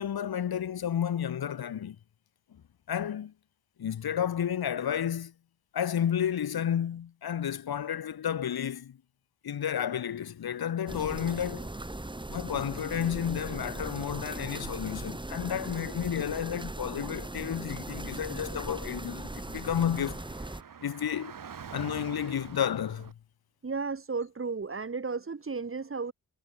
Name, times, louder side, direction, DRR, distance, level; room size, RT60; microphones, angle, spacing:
voice 1, 0.0-2.0 2.5-2.6 2.9-3.3 3.8-5.3 5.7-9.0 9.4-11.7 12.3-20.2 20.8-21.4 21.7-23.1, left 9 dB, 80° left, 1.3 m, -31 dB
sound 1, 10.9-20.6, right 2 dB, 15° right, 1.8 m, -39 dB
Car / Traffic noise roadway noise, 18.1-23.1, right 7 dB, 60° right, 1.9 m, -47 dB
voice 2, 23.6-26.1, right 4 dB, 35° right, 2.1 m, -34 dB
wide cardioid pair, 110°, 37 cm